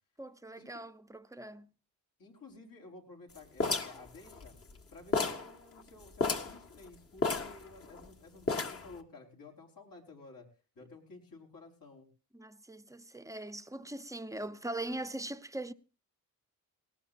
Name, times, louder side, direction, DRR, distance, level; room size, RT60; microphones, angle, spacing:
voice 1, 0.2-1.7 12.3-15.7, right 1 dB, 10° right, 0.8 m, -41 dB
voice 2, 2.2-4.5 4.9-10.5 10.7-12.1, left 3 dB, 65° left, 5.0 m, -53 dB
sound 1, 3.6-4.8 5.1-5.5 5.8-5.9 6.2-6.6 7.2-8.1 8.5-8.9, left 3 dB, 40° left, 1.7 m, -32 dB
18.5 x 18.5 x 2.6 m
cardioid pair, 110°, 36 cm